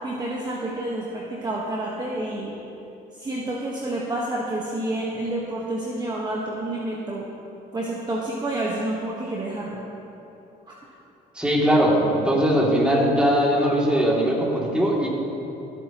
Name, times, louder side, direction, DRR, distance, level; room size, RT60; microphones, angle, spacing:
voice 1, 0.0-2.6 3.2-7.3 7.7-9.8 10.7-10.8, right 1 dB, 25° right, -4 dB, 1.4 m, -29 dB
voice 2, 11.3-15.1, equal, 5° right, -4 dB, 2.8 m, -20 dB
25.5 x 8.5 x 3.1 m, 2.9 s
cardioid pair, 110°, 17 cm